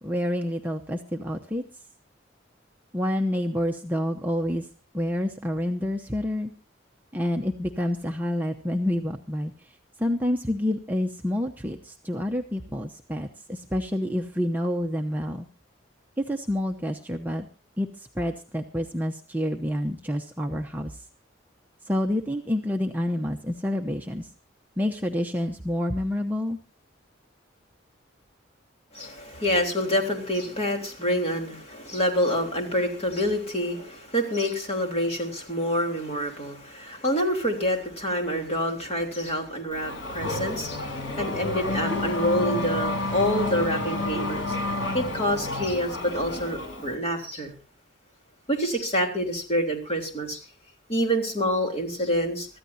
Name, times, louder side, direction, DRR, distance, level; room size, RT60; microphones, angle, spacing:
voice 1, 0.0-1.6 2.9-4.7 4.9-6.5 7.1-15.5 16.2-17.5 17.8-21.0 21.9-24.3 24.8-26.6, left 1 dB, 10° right, 2 dB, 0.8 m, -28 dB
voice 2, 28.9-44.6 44.9-47.5 48.5-50.4 50.9-52.5, equal, 30° left, 2 dB, 3.5 m, -27 dB
Race car auto racing / Accelerating revving vroom, 39.7-46.9, left 2 dB, 90° left, 6.5 m, -30 dB
24.5 x 14.5 x 2.7 m, 0.33 s
head